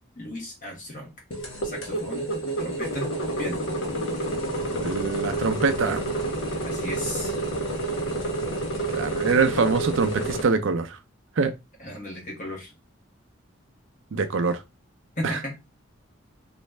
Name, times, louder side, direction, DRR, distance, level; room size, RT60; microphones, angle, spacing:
voice 1, 0.2-1.1 1.6-2.3 2.6-3.6 6.6-7.4 11.8-12.7 15.2-15.6, left 1 dB, 40° left, 1.3 m, -35 dB
sound 1, 1.3-10.4, right 2 dB, 75° left, 0.9 m, -29 dB
voice 2, 4.8-6.1 8.9-11.0 11.4-11.5 14.1-14.6, right 4 dB, 70° right, 0.5 m, -24 dB
3.1 x 2.5 x 3.2 m
head